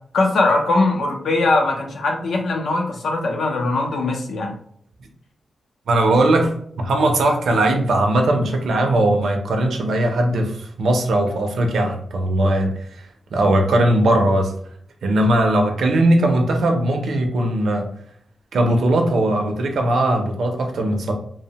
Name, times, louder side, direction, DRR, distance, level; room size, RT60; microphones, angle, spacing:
voice 1, 0.1-4.6, left 2 dB, 70° left, 2 dB, 0.6 m, -20 dB
voice 2, 5.9-14.5 15.0-17.9 18.5-21.1, right 1 dB, 75° right, 3 dB, 0.5 m, -19 dB
2.8 x 2.0 x 2.8 m, 0.63 s
wide cardioid pair, 140°, 0 cm